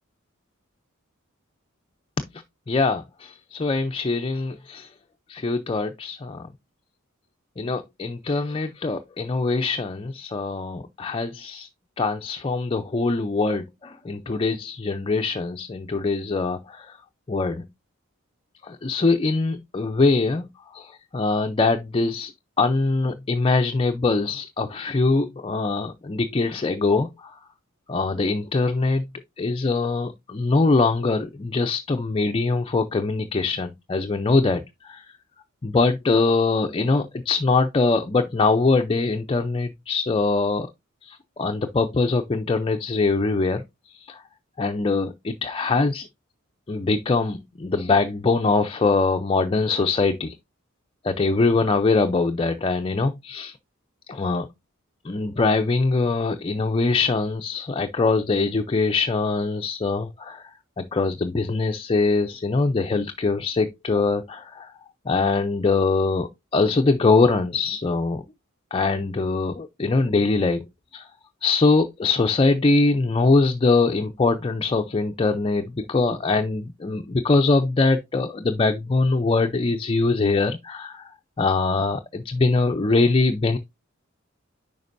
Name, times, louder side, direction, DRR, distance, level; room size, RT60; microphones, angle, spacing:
voice 1, 2.7-4.9 5.3-6.5 7.6-11.7 12.0-17.0 17.3-17.6 18.6-22.3 22.6-27.3 27.9-29.0 29.4-35.0 35.6-40.7 41.0-44.2 44.6-46.1 46.7-50.3 51.0-53.5 54.1-54.5 55.0-60.4 60.8-64.7 65.1-68.2 68.7-70.6 70.9-71.1 71.4-81.1 81.4-83.6, left 3 dB, 25° left, 0.5 m, -23 dB
9.4 x 5.2 x 2.6 m
head